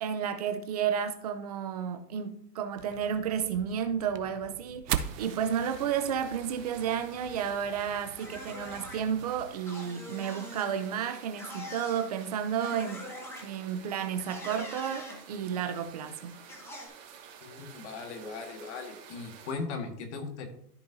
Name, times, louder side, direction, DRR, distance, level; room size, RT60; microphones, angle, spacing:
voice 1, 0.0-13.0 13.4-16.4, right 8 dB, 25° right, 0.5 m, -32 dB
sound 1, 2.8-9.5, right 9 dB, 80° right, 0.9 m, -40 dB
sound 2, 4.9-19.5, right 7 dB, 55° right, 2.5 m, -51 dB
sound 3, 8.2-9.0 9.7-10.7 11.4-12.1 12.6-13.4 14.2-15.2 16.5-16.9, left 1 dB, 5° left, 0.9 m, -43 dB
voice 2, 17.4-20.5, left 4 dB, 45° left, 1.6 m, -38 dB
13.5 x 5.2 x 2.6 m
hypercardioid pair, 155°, 48 cm